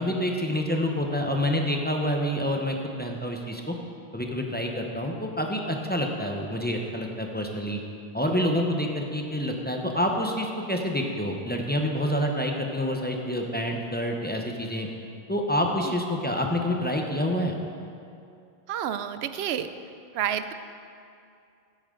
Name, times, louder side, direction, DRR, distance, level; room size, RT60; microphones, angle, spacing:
voice 1, 0.0-3.7 4.1-7.8 8.1-14.9 15.3-17.5, equal, 10° left, 1 dB, 0.8 m, -27 dB
voice 2, 18.7-19.7 20.1-20.5, right 9 dB, 80° right, 11 dB, 0.8 m, -29 dB
15.0 x 8.7 x 3.8 m, 2.5 s
omnidirectional pair, 1.1 m